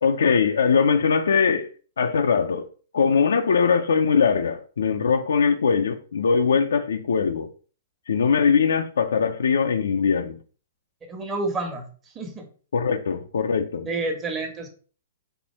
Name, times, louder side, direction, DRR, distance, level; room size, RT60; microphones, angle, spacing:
voice 1, 0.0-1.7 2.0-2.7 2.9-7.5 8.1-10.4 12.7-13.9, left 6 dB, 80° left, 0.6 m, -21 dB
voice 2, 11.1-11.9 12.1-12.5 13.8-14.7, right 2 dB, 20° right, 1.3 m, -29 dB
4.5 x 2.7 x 4.4 m
hypercardioid pair, 130°, 0 cm